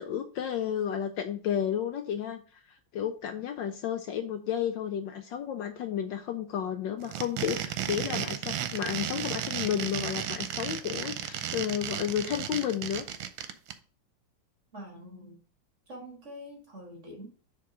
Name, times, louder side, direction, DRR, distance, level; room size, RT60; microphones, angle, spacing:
voice 1, 0.0-13.1, left 9 dB, 75° left, 7 dB, 1.1 m, -32 dB
sound 1, 7.0-13.7, right 10 dB, 80° right, 1.5 m, -34 dB
voice 2, 14.7-15.4 15.9-17.3, equal, 35° right, 1 dB, 1.9 m, -45 dB
6.8 x 3.7 x 4.9 m, 0.41 s
omnidirectional pair, 2.3 m